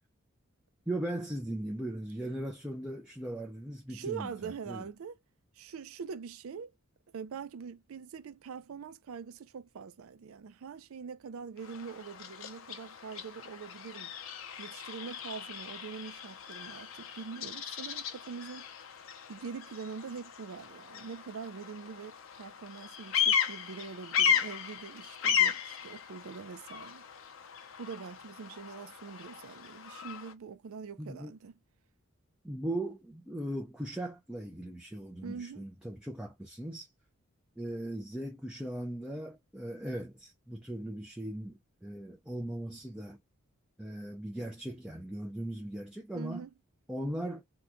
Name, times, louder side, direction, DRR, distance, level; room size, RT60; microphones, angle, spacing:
voice 1, 0.9-4.8 31.0-31.3 32.4-36.9 37.6-43.2 43.8-46.4 46.9-47.4, right 1 dB, 5° right, 0.4 m, -38 dB
voice 2, 3.9-5.2 5.6-6.7 7.1-14.1 14.6-18.7 19.3-27.1 27.8-31.5 35.2-35.6 46.1-46.5, right 6 dB, 75° right, 0.4 m, -43 dB
Bird vocalization bird call bird song, 11.6-30.3, left 8 dB, 65° left, 0.6 m, -35 dB
2.9 x 2.2 x 3.7 m
head